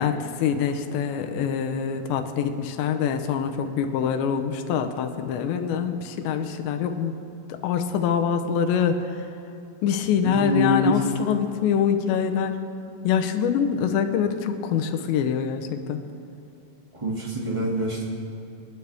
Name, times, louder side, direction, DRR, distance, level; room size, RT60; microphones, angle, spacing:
voice 1, 0.0-7.1 7.5-9.2 9.8-12.5 13.0-16.0, left 7 dB, 85° left, 6 dB, 3.1 m, -25 dB
voice 2, 10.2-11.1 17.0-18.1, left 1 dB, 20° right, -5 dB, 0.7 m, -25 dB
26.0 x 12.0 x 3.5 m, 2.6 s
omnidirectional pair, 5.0 m